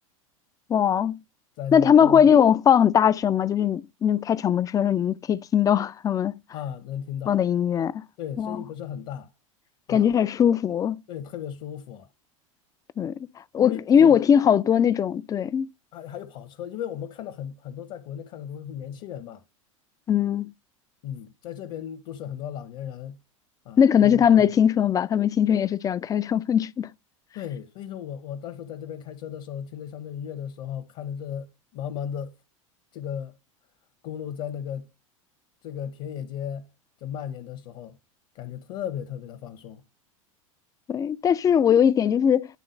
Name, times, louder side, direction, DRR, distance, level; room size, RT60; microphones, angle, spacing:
voice 1, 0.7-1.2 1.7-6.3 7.3-8.0 8.4-8.6 9.9-11.0 13.0-13.1 13.5-15.7 20.1-20.5 23.8-26.9 40.9-42.5, left 8 dB, 20° left, 0.4 m, -20 dB
voice 2, 1.6-2.4 6.5-7.4 8.2-9.3 9.9-10.1 11.1-12.1 13.6-14.4 15.9-19.4 21.0-23.2 23.6-24.3 27.3-32.3 32.9-33.4 34.0-34.9 35.6-36.7 37.0-38.0 38.3-39.8, left 9 dB, 45° left, 1.0 m, -36 dB
11.0 x 3.8 x 5.2 m
figure-of-eight pair, 85°, 17 cm